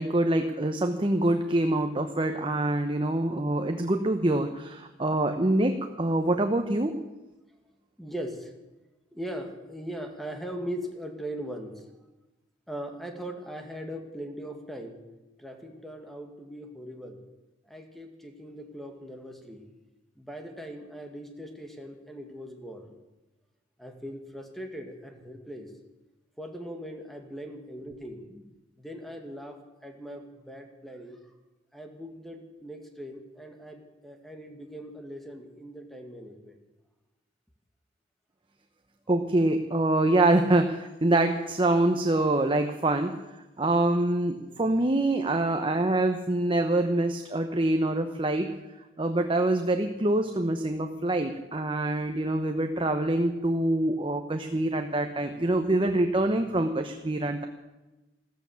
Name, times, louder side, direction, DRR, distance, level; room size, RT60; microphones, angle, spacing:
voice 1, 0.0-6.9 39.1-43.1 43.6-48.5 49.0-57.5, right 2 dB, 30° right, 6 dB, 0.9 m, -25 dB
voice 2, 8.0-8.5 9.1-11.9 12.7-15.0 15.4-17.2 17.7-19.7 20.2-23.0 23.8-25.7 26.4-28.5 28.8-29.6 29.8-31.2 31.7-36.6 44.4-44.7, equal, ahead, 3 dB, 1.9 m, -40 dB
14.5 x 14.0 x 7.1 m, 1.0 s
head